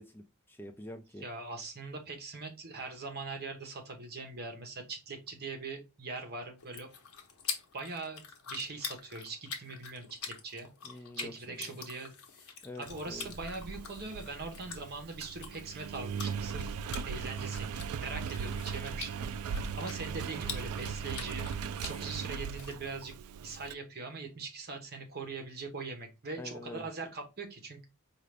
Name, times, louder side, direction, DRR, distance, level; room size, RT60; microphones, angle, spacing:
voice 1, 0.0-1.2 10.8-11.8 12.6-13.3 26.4-26.9, left 1 dB, 10° left, 6 dB, 0.3 m, -46 dB
voice 2, 1.2-6.9 7.7-12.1 12.4-16.8 17.1-21.5 21.8-23.1 23.4-27.9, right 3 dB, 45° right, 4 dB, 1.0 m, -42 dB
sound 1, 6.6-22.7, left 6 dB, 80° left, 0.9 m, -46 dB
Engine, 12.9-23.7, right 6 dB, 75° right, 0.3 m, -38 dB
4.7 x 2.4 x 3.3 m, 0.27 s
head